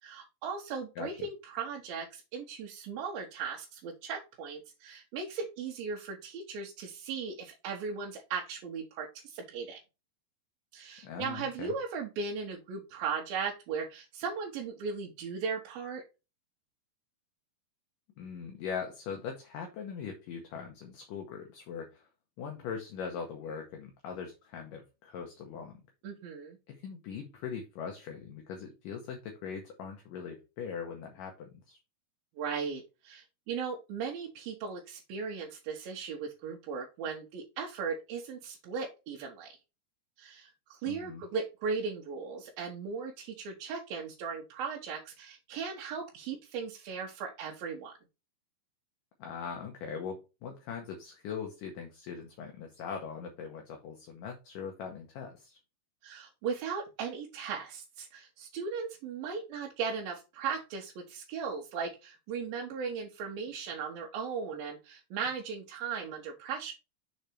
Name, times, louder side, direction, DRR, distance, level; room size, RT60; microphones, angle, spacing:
voice 1, 0.0-9.8 10.7-16.0 26.0-26.6 32.4-39.5 40.2-47.9 56.0-66.7, right 5 dB, 75° right, -1 dB, 2.7 m, -37 dB
voice 2, 11.0-11.7 18.2-22.1 22.4-25.8 26.7-31.8 40.9-41.2 49.2-55.6, left 6 dB, 70° left, 2 dB, 2.3 m, -41 dB
6.8 x 4.0 x 4.5 m, 0.28 s
omnidirectional pair, 4.6 m